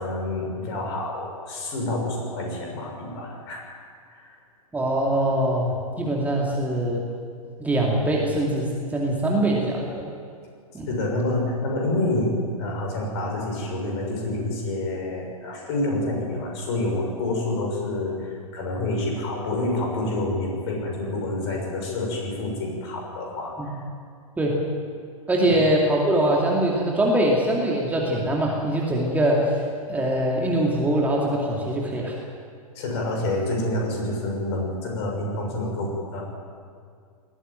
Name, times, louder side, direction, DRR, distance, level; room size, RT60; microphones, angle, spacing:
voice 1, 0.0-3.6 4.1-4.4 10.9-23.8 25.5-25.6 32.7-36.2, left 2 dB, 45° left, 0 dB, 6.7 m, -28 dB
voice 2, 4.7-7.0 7.6-10.1 10.7-10.9 23.6-23.7 24.4-24.6 25.3-29.6 29.9-32.2, right 1 dB, 10° right, -2 dB, 2.5 m, -23 dB
20.0 x 15.0 x 9.2 m, 2.2 s
figure-of-eight pair, 105°, 19 cm